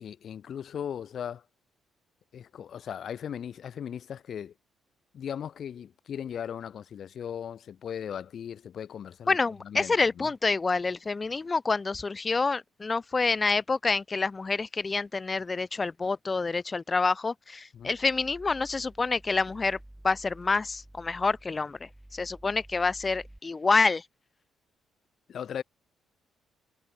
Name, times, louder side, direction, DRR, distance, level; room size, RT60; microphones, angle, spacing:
voice 1, 0.0-1.4 2.3-4.5 5.1-9.4 9.6-10.3 17.7-17.9 25.3-25.6, left 8 dB, 60° left, 1.3 m, -38 dB
voice 2, 9.3-19.8 20.0-21.8 22.1-24.0, left 4 dB, 25° left, 0.8 m, -27 dB
sound 1, 17.8-23.4, right 1 dB, 5° right, 5.9 m, -51 dB
cardioid pair, 90°, 0 cm